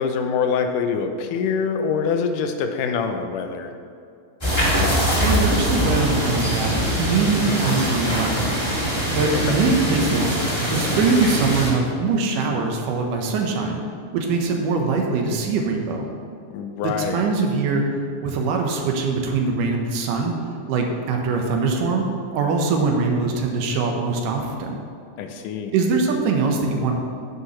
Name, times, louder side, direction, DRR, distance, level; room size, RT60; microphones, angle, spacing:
voice 1, 0.0-3.7 9.3-9.6 16.5-17.2 25.2-25.7, left 6 dB, 90° left, 6 dB, 2.3 m, -25 dB
sound 1, 4.4-11.7, equal, 15° left, 1.2 m, -22 dB
voice 2, 5.2-8.5 9.1-10.4 10.7-13.8 14.1-16.1 16.8-17.8 18.2-20.3 20.7-22.1 22.3-24.8 25.7-27.0, right 4 dB, 90° right, 2 dB, 2.6 m, -22 dB
9.8 x 9.5 x 3.1 m, 2.4 s
omnidirectional pair, 3.6 m